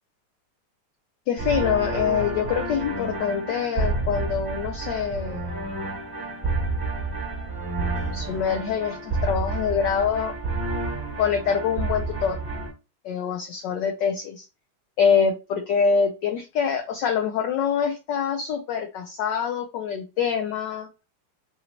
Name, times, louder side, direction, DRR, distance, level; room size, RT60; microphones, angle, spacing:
voice 1, 1.3-5.5 8.1-10.3 11.2-12.4 13.0-14.4 15.0-20.9, left 7 dB, 75° left, 5 dB, 1.0 m, -25 dB
sound 1, 1.4-12.7, right 3 dB, 10° right, 1.3 m, -29 dB
4.2 x 2.6 x 2.9 m, 0.29 s
omnidirectional pair, 2.4 m